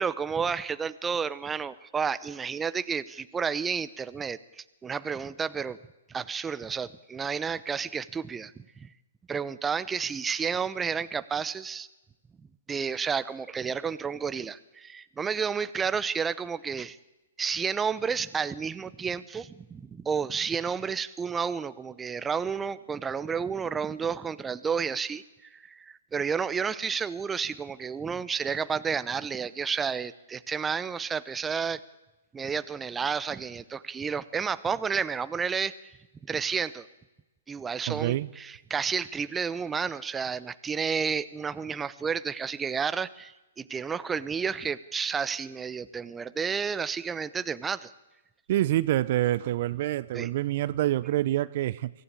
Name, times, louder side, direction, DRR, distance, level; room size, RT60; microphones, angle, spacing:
voice 1, 0.0-5.8 6.1-8.9 9.3-11.9 12.7-17.0 17.4-31.8 32.3-35.7 36.3-36.9 37.5-47.9 50.1-50.3, right 6 dB, 15° right, 15 dB, 0.8 m, -31 dB
voice 2, 37.9-38.3 48.5-51.9, right 14 dB, 50° right, 17 dB, 0.7 m, -26 dB
23.5 x 15.0 x 8.6 m, 1.0 s
hypercardioid pair, 125°, 0 cm